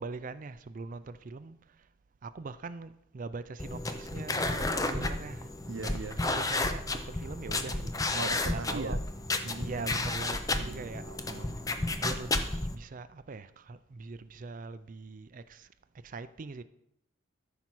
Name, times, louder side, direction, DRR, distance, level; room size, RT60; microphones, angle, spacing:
voice 1, 0.0-1.9 2.2-5.5 6.2-9.0 9.6-11.6 12.0-15.7 16.0-16.6, right 3 dB, 40° right, 0.4 m, -42 dB
sound 1, 3.6-12.8, left 2 dB, 15° left, 0.6 m, -32 dB
voice 2, 4.8-6.2 8.1-9.0 9.4-10.0 10.6-11.6, right 3 dB, 70° right, 0.7 m, -41 dB
13.0 x 5.9 x 4.6 m
head